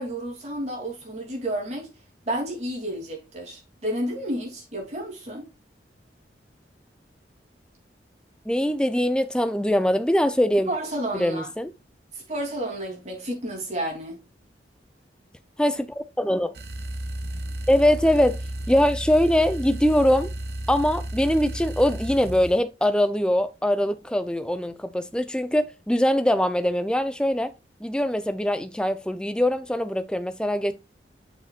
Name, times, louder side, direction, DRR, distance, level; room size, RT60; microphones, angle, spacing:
voice 1, 0.0-1.9 2.3-5.5 10.7-11.5 12.1-14.2, right 1 dB, 40° right, 3.1 m, -31 dB
voice 2, 8.5-10.7 11.1-11.7 15.6-16.5 17.7-18.4 18.7-20.3 20.7-27.5 27.8-30.7, equal, 5° left, 0.6 m, -22 dB
sound 1, 16.5-22.6, right 1 dB, 65° right, 0.8 m, -33 dB
8.0 x 6.6 x 2.4 m
head